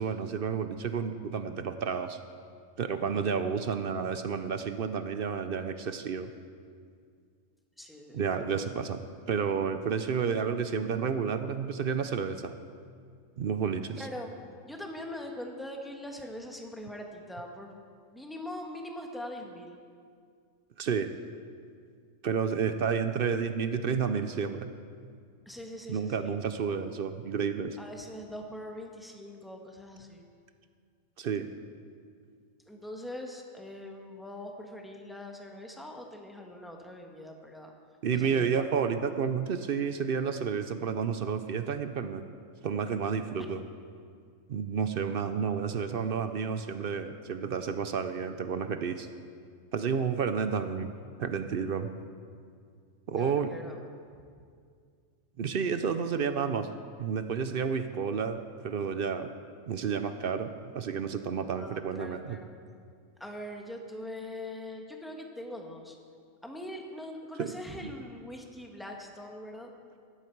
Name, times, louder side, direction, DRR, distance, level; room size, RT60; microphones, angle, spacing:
voice 1, 0.0-2.2 2.8-6.3 8.1-9.0 9.3-12.5 13.4-14.1 20.8-21.1 22.2-24.7 25.9-27.8 31.2-31.5 38.0-42.2 42.6-43.6 44.5-49.1 49.7-50.9 51.2-51.9 53.1-53.5 55.4-56.7 57.0-59.3 59.7-60.5 60.7-62.4 67.4-67.5, right 6 dB, 55° right, 9 dB, 0.7 m, -30 dB
voice 2, 3.0-3.3 7.8-8.6 14.0-14.3 14.6-19.8 25.4-26.4 26.6-26.9 27.8-30.2 32.7-37.7 38.1-38.6 53.2-53.7 61.6-62.5 63.2-66.0 66.4-69.7, left 1 dB, ahead, 2 dB, 1.2 m, -42 dB
16.5 x 11.5 x 4.6 m, 2.2 s
omnidirectional pair, 1.3 m